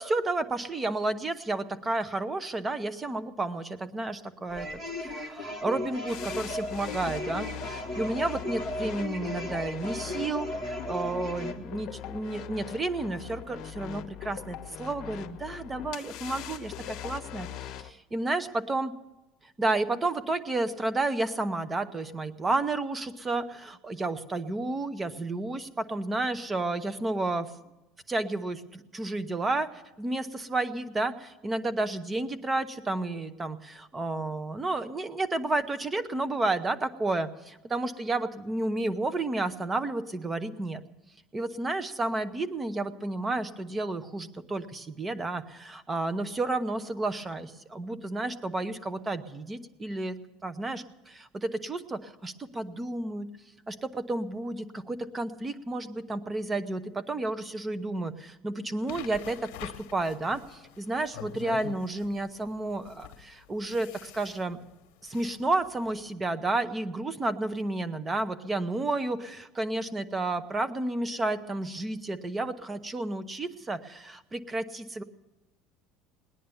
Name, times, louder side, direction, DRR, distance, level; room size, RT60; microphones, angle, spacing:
voice 1, 0.0-4.7 5.0-18.9 19.4-27.5 28.1-40.8 41.3-53.3 53.7-64.6 65.0-75.0, right 2 dB, 15° right, 13 dB, 0.8 m, -31 dB
sound 1, 4.5-11.5, left 1 dB, 35° right, 1.6 m, -36 dB
sound 2, 6.1-17.9, left 11 dB, 45° left, 1.0 m, -41 dB
sound 3, 58.9-66.1, left 12 dB, 80° left, 1.0 m, -46 dB
19.0 x 10.0 x 7.0 m, 0.99 s
cardioid pair, 155°, 0 cm